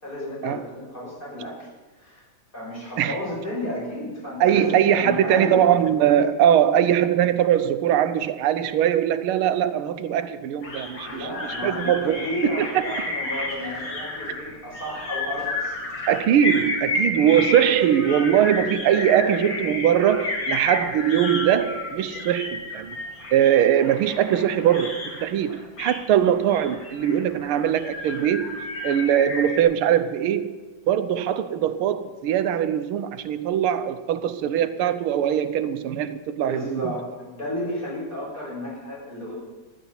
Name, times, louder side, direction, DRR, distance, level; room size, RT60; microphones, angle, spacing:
voice 1, 0.0-1.7 2.0-2.3 2.5-5.7 11.0-15.8 35.4-35.5 36.3-39.3, left 1 dB, 25° left, 6.3 m, -33 dB
voice 2, 4.4-12.8 16.1-22.9 23.3-30.5 30.9-36.9, right 10 dB, 90° right, 1.6 m, -21 dB
sound 1, 10.6-29.6, left 2 dB, 80° left, 3.4 m, -31 dB
16.0 x 11.0 x 5.6 m
omnidirectional pair, 2.3 m